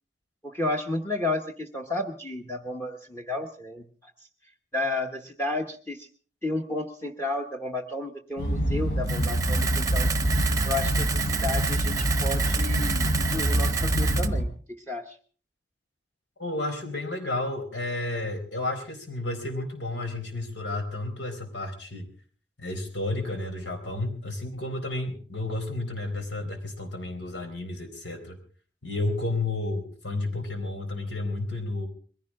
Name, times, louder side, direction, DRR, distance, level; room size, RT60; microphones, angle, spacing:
voice 1, 0.4-4.1 4.7-6.1 6.4-10.1 10.6-15.2, left 2 dB, 15° left, 4 dB, 1.1 m, -32 dB
sound 1, 8.4-14.4, equal, 65° left, 4.1 m, -25 dB
Camera, 9.1-14.3, right 7 dB, 20° right, 0.8 m, -30 dB
voice 2, 16.4-22.1 22.6-28.4 28.8-31.9, left 2 dB, 90° left, 5 dB, 4.1 m, -32 dB
22.0 x 16.0 x 3.7 m, 0.41 s
head